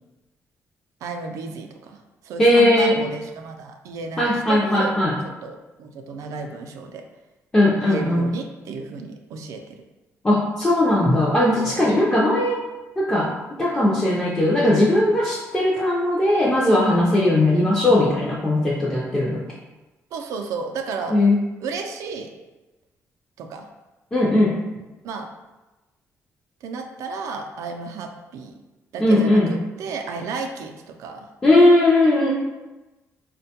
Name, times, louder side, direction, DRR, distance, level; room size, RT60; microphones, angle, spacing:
voice 1, 1.0-4.9 5.2-7.0 7.8-9.8 11.6-12.0 20.1-21.2 21.6-22.3 23.4-23.7 25.0-25.3 26.6-28.6 28.9-31.3, right 4 dB, 80° right, 4 dB, 0.3 m, -33 dB
voice 2, 2.4-3.0 4.2-5.1 7.5-8.2 10.2-12.6 13.0-19.4 21.1-21.4 24.1-24.6 29.0-29.5 31.4-32.3, left 1 dB, 15° left, -6 dB, 0.4 m, -18 dB
4.3 x 2.1 x 2.7 m, 1.1 s
cardioid pair, 175°, 5 cm